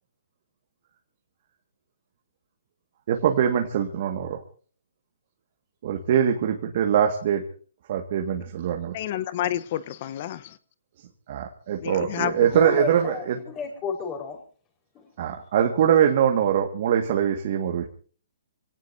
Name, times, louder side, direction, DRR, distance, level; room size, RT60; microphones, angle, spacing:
voice 1, 3.1-4.4 5.8-7.4 7.9-8.9 11.3-13.4 15.2-17.9, right 9 dB, 50° right, 3 dB, 2.1 m, -23 dB
voice 2, 8.9-10.6 11.8-12.5, left 12 dB, 45° left, 16 dB, 1.1 m, -30 dB
voice 3, 12.5-14.4 15.0-15.1, left 6 dB, 20° left, 3 dB, 5.1 m, -32 dB
26.5 x 18.0 x 2.8 m, 0.41 s
hypercardioid pair, 145°, 0 cm